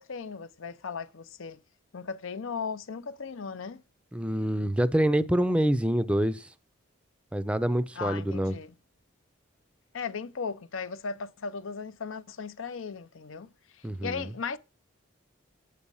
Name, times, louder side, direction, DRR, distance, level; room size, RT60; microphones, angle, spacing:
voice 1, 0.0-1.6 1.9-3.8 8.0-8.7 9.9-14.6, left 5 dB, 75° left, 0.6 m, -37 dB
voice 2, 4.1-6.5 7.3-8.5 13.8-14.2, right 1 dB, 5° right, 0.4 m, -26 dB
8.5 x 5.2 x 5.4 m
head